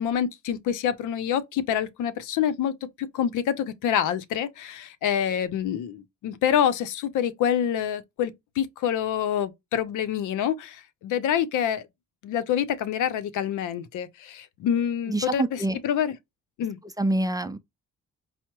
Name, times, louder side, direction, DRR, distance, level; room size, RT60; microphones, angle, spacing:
voice 1, 0.0-11.9 12.2-16.2 16.6-16.8, left 9 dB, 85° left, 0.7 m, -27 dB
voice 2, 15.1-15.8 17.0-17.6, right 2 dB, 10° right, 0.4 m, -26 dB
5.5 x 2.1 x 3.0 m
cardioid pair, 90°, 30 cm